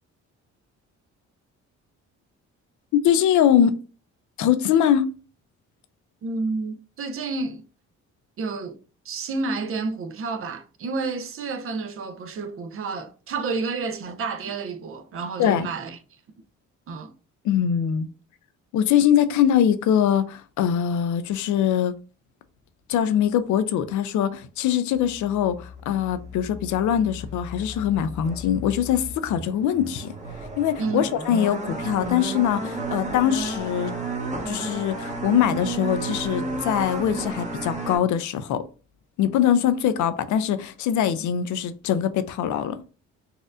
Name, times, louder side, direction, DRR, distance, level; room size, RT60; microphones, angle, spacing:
voice 1, 2.9-3.7 4.4-5.1 15.4-15.7 17.4-18.1 18.7-21.9 22.9-30.1 30.6-33.9 34.5-38.6 39.2-42.8, left 9 dB, 75° left, 0.5 m, -22 dB
voice 2, 6.2-7.6 8.4-8.8 9.0-16.0 16.9-17.1 30.8-31.1, right 4 dB, 45° right, 0.5 m, -30 dB
sound 1, 24.9-38.0, right 2 dB, 25° right, 1.0 m, -33 dB
4.1 x 2.5 x 2.4 m
cardioid pair, 90°, 30 cm